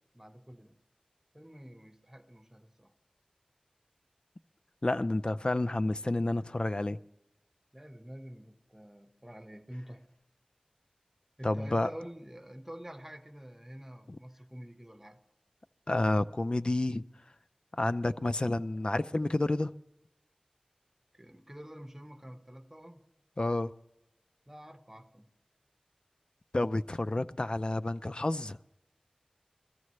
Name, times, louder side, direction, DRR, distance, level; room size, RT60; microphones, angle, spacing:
voice 1, 0.1-0.8 1.3-2.9 7.7-10.1 11.4-15.2 21.1-23.1 24.5-25.3, equal, 10° right, 1.2 m, -47 dB
voice 2, 4.8-7.0 11.4-11.9 15.9-17.0 17.8-19.7 23.4-23.7 26.5-28.6, left 2 dB, 45° left, 0.4 m, -30 dB
21.0 x 14.0 x 3.2 m
wide cardioid pair, 40°, 2 cm